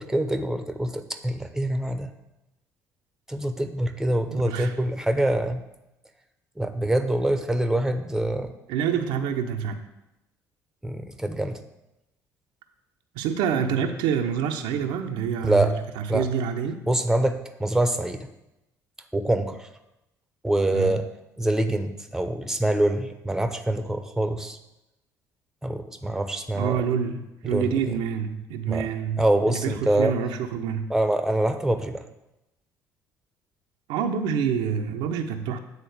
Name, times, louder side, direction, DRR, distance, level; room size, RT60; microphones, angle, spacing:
voice 1, 0.0-2.1 3.3-5.6 6.6-8.5 10.8-11.6 15.4-15.7 16.1-16.3 16.9-18.2 19.1-19.7 20.4-21.0 21.4-24.6 25.6-26.8 27.4-28.0 28.7-28.9 29.2-30.1 30.9-32.0, right 1 dB, 5° right, 9 dB, 0.8 m, -25 dB
voice 2, 4.3-4.7 8.7-9.8 13.1-16.8 20.7-20.9 26.5-30.9 33.9-35.6, right 7 dB, 65° right, 5 dB, 0.7 m, -27 dB
9.6 x 4.1 x 6.5 m, 0.92 s
figure-of-eight pair, 50°, 9 cm